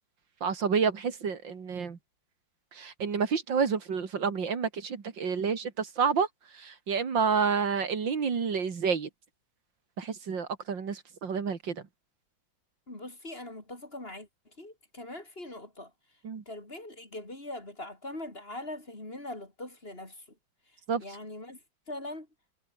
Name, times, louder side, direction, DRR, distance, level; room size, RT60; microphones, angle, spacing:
voice 1, 0.4-2.0 2.7-6.3 6.5-9.1 10.0-11.8 16.2-16.4 20.9-21.0, right 6 dB, 80° right, 3.0 m, -29 dB
voice 2, 12.9-14.3 14.6-15.9 16.5-20.2 21.0-21.6 21.9-22.3, left 1 dB, 30° left, 4.7 m, -41 dB
omnidirectional pair, 2.0 m